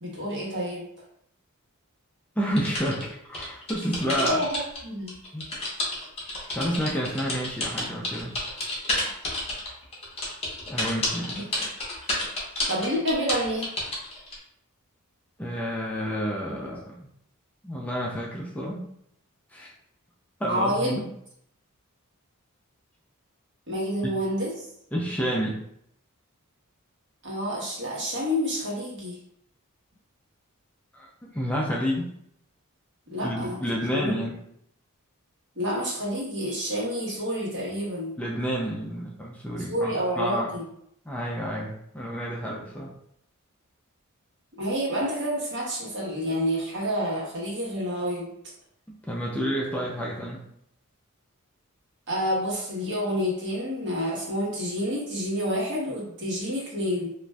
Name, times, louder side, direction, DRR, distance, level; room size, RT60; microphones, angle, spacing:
voice 1, 0.0-0.8 4.2-5.1 11.3-11.4 12.7-13.7 20.5-20.9 23.7-24.7 27.2-29.2 33.1-33.6 33.9-34.3 35.6-38.1 39.7-40.6 44.6-48.3 52.1-57.1, equal, 55° right, -5 dB, 1.1 m, -28 dB
voice 2, 2.4-4.4 5.3-5.6 6.5-8.4 10.7-11.4 15.4-17.1 17.6-18.8 19.5-19.7 20.4-21.1 24.9-25.6 30.9-32.1 33.2-34.4 38.2-40.5 41.1-42.9 48.9-50.4, equal, 5° left, -4 dB, 0.3 m, -30 dB
sound 1, 2.6-4.8 5.1-14.3, left 1 dB, 30° left, 0.7 m, -30 dB
2.5 x 2.2 x 3.2 m, 0.72 s
head